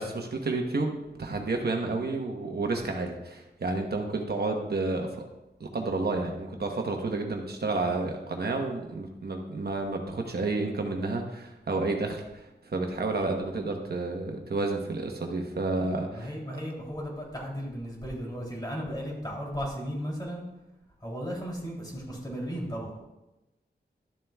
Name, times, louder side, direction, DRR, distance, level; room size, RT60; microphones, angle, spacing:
voice 1, 0.0-5.2 5.6-16.6, right 3 dB, 65° right, 2 dB, 1.0 m, -31 dB
voice 2, 16.1-20.5 21.0-22.9, equal, 25° left, -3 dB, 2.9 m, -35 dB
12.5 x 7.5 x 2.3 m, 0.99 s
wide cardioid pair, 105°, 18 cm